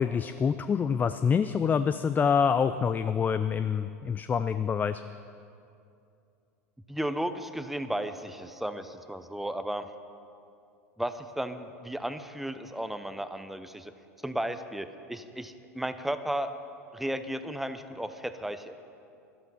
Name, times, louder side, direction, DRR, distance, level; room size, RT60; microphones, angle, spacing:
voice 1, 0.0-5.0, left 6 dB, 20° left, 12 dB, 0.3 m, -26 dB
voice 2, 6.9-9.9 11.0-13.9 14.2-16.5 16.9-18.7, right 1 dB, ahead, 10 dB, 0.7 m, -34 dB
12.0 x 11.5 x 5.5 m, 2.6 s
hypercardioid pair, 85°, 9 cm